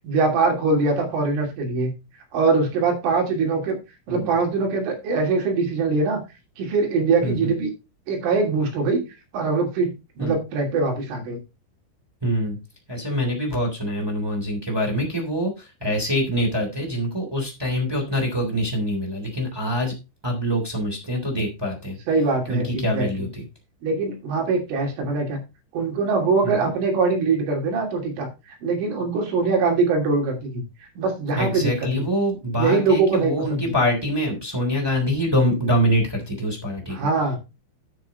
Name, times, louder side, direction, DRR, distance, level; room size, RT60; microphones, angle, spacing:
voice 1, 0.0-1.9 2.3-3.8 4.1-6.2 6.6-7.7 8.1-9.0 9.3-11.4 22.1-23.3 23.8-25.4 25.7-28.3 28.6-30.6 31.0-32.0 32.6-33.8 36.9-37.4, right 4 dB, 90° right, 2 dB, 5.4 m, -22 dB
voice 2, 7.2-7.5 10.2-10.3 12.2-12.6 12.9-19.9 20.2-22.0 22.5-23.4 25.0-25.1 26.4-26.7 31.4-37.1, equal, 5° right, 0 dB, 2.3 m, -25 dB
9.3 x 7.7 x 4.1 m, 0.27 s
omnidirectional pair, 5.4 m